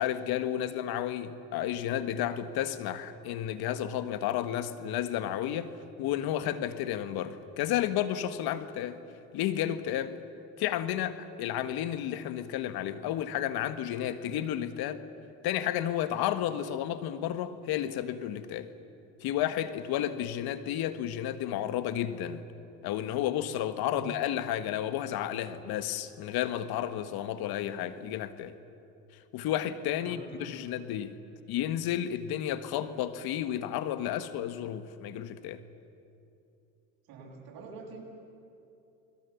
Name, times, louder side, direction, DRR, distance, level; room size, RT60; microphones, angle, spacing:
voice 1, 0.0-5.7 6.0-9.0 9.3-10.1 10.6-15.0 15.4-18.7 19.2-22.4 22.8-28.5 29.3-31.2 31.5-35.6, left 11 dB, 70° left, 11 dB, 1.5 m, -32 dB
voice 2, 23.9-24.2 30.0-30.6 37.1-38.0, right 4 dB, 65° right, -1 dB, 7.1 m, -46 dB
29.5 x 21.0 x 7.1 m, 2.7 s
supercardioid pair, 90°, 39 cm